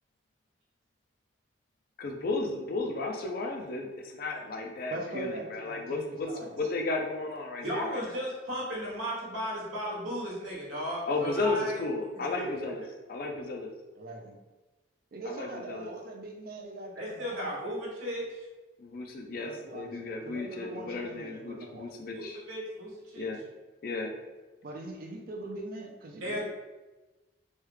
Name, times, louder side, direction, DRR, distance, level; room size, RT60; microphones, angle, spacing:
voice 1, 2.0-6.3 6.5-8.0 11.1-12.8 13.1-13.7 15.3-15.9 18.8-22.4 23.1-23.4 23.8-24.1, left 3 dB, 45° left, 2 dB, 0.4 m, -34 dB
voice 2, 4.9-6.5 14.0-14.4 15.1-17.5 19.4-22.0 24.6-26.5, right 2 dB, 45° right, 1 dB, 0.4 m, -42 dB
voice 3, 7.6-11.8 12.4-12.5 16.9-18.5 22.1-23.3 26.2-26.5, equal, 85° right, -5 dB, 1.1 m, -35 dB
3.2 x 2.2 x 3.2 m, 1.2 s
head